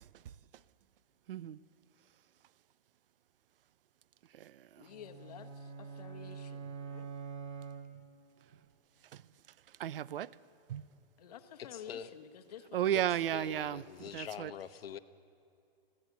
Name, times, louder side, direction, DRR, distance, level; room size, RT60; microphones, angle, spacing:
voice 1, 1.3-1.6 4.3-4.9 9.1-9.2 9.8-10.3 10.7-10.8 12.7-14.5, right 11 dB, 70° right, 0.6 m, -34 dB
voice 2, 4.8-7.1 11.2-13.3, left 9 dB, 40° left, 1.0 m, -51 dB
sound 1, 4.8-8.4, right 6 dB, 30° right, 1.2 m, -45 dB
voice 3, 11.6-12.1 13.3-15.0, left 9 dB, 80° left, 1.0 m, -44 dB
20.5 x 15.5 x 8.3 m
hypercardioid pair, 175°, 29 cm